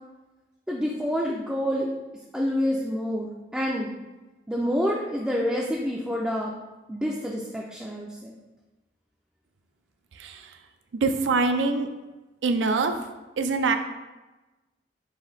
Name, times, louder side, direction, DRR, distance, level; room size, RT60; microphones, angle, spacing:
voice 1, 0.7-2.0 2.3-3.9 4.5-6.5 6.9-8.3, equal, 5° right, -3 dB, 0.3 m, -28 dB
voice 2, 10.1-10.6 11.0-11.9 12.4-12.9 13.4-13.8, right 4 dB, 90° right, 7 dB, 0.4 m, -24 dB
5.5 x 2.6 x 3.3 m, 1.1 s
head